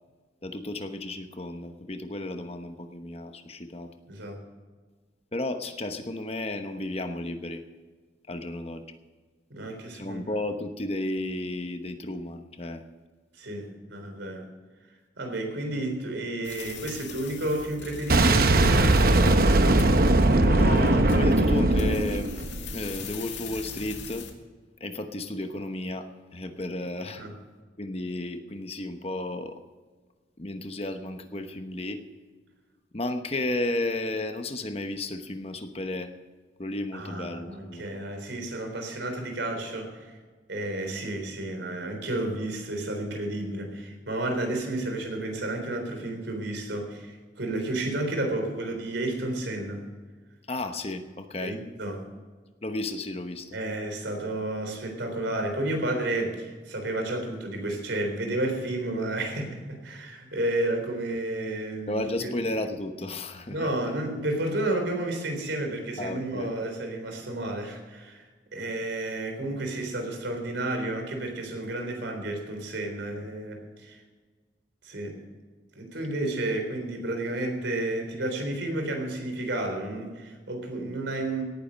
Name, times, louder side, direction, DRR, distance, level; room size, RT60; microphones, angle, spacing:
voice 1, 0.4-3.9 5.3-7.6 8.3-8.8 10.0-12.8 20.4-22.3 22.7-24.3 24.8-27.2 27.8-29.6 30.4-32.0 32.9-36.1 36.6-37.9 50.5-51.6 52.6-53.5 61.9-63.7 66.0-66.5, left 1 dB, 30° left, 7 dB, 1.0 m, -33 dB
voice 2, 4.1-4.4 9.5-10.2 13.3-14.5 15.2-19.3 27.2-27.4 36.9-40.2 40.5-49.9 51.4-52.1 53.5-62.3 63.5-74.0 74.8-75.2 75.7-81.4, right 1 dB, 75° right, 4 dB, 3.7 m, -31 dB
sound 1, 16.4-24.3, left 5 dB, 80° left, 2.2 m, -42 dB
Boom, 18.1-23.0, right 2 dB, 50° right, 0.9 m, -20 dB
18.0 x 9.7 x 5.2 m, 1.4 s
head